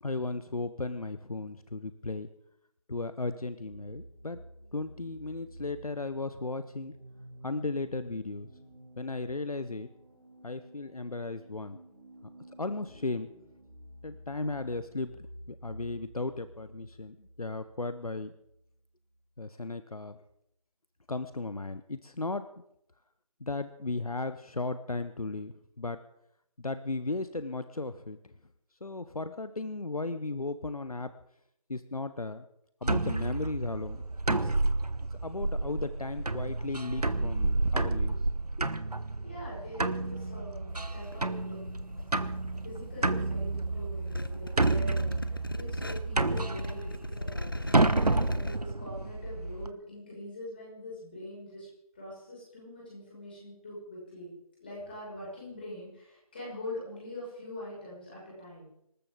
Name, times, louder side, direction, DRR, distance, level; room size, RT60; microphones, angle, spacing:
voice 1, 0.0-2.3 2.9-4.4 4.7-6.9 7.4-8.5 9.0-9.9 10.4-11.8 12.6-13.3 14.0-18.3 19.4-20.2 21.1-22.5 23.4-26.0 26.6-28.2 28.8-31.1 31.7-32.4 32.8-34.0 34.3-34.6 35.2-38.2, left 3 dB, 70° left, 12 dB, 0.9 m, -35 dB
sound 1, 3.7-19.2, right 1 dB, 25° right, 3.5 m, -51 dB
sound 2, 32.8-49.7, right 2 dB, 85° right, 1.1 m, -30 dB
voice 2, 39.2-41.6 42.6-47.5 47.9-51.7 51.9-54.3 54.6-58.7, left 1 dB, 15° left, -6 dB, 5.9 m, -43 dB
sound 3, 40.7-48.6, left 1 dB, 35° left, 0.6 m, -39 dB
25.5 x 14.0 x 3.8 m, 0.78 s
figure-of-eight pair, 170°, 19 cm